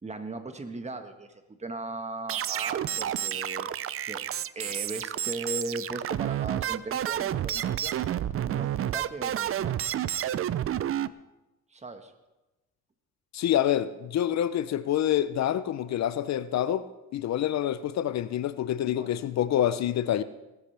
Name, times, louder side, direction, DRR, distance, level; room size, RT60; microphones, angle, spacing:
voice 1, 0.0-3.7 4.1-4.2 4.5-7.9 8.4-9.8 11.7-12.1 18.8-19.2, right 2 dB, 20° right, 1.4 m, -38 dB
sound 1, 2.3-11.1, right 11 dB, 45° right, 0.5 m, -30 dB
voice 2, 13.3-16.9 17.1-20.2, left 11 dB, 65° left, 0.6 m, -27 dB
18.0 x 13.5 x 3.4 m
cardioid pair, 90°, 30 cm